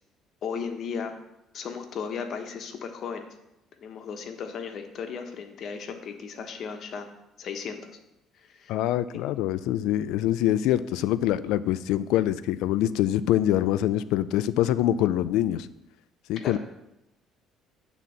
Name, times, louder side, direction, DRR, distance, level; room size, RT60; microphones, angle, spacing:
voice 1, 0.4-1.1 1.5-3.3 3.8-7.1 7.4-8.0 8.3-8.7 16.4-16.6, left 6 dB, 55° left, 6 dB, 1.1 m, -35 dB
voice 2, 8.7-15.7 16.3-16.6, left 12 dB, 85° left, 15 dB, 0.4 m, -24 dB
9.3 x 4.0 x 7.2 m, 0.89 s
cardioid pair, 115°, 0 cm